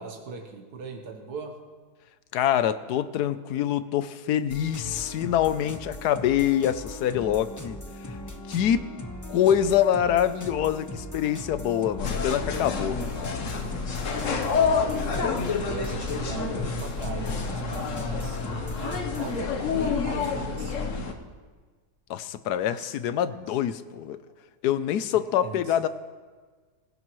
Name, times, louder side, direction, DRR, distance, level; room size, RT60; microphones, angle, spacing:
voice 1, 0.0-1.6 14.2-21.3 22.7-23.0 24.3-24.4 25.1-25.8, right 4 dB, 70° right, 3 dB, 1.8 m, -40 dB
voice 2, 2.3-7.8 8.1-8.2 8.5-8.8 9.3-13.1 22.1-24.2 24.6-25.9, left 10 dB, 80° left, 13 dB, 1.2 m, -25 dB
sound 1, 4.5-19.5, left 1 dB, 15° left, 0.7 m, -39 dB
sound 2, 12.0-21.1, left 5 dB, 55° left, 1.3 m, -28 dB
24.5 x 16.0 x 3.1 m, 1.4 s
omnidirectional pair, 1.7 m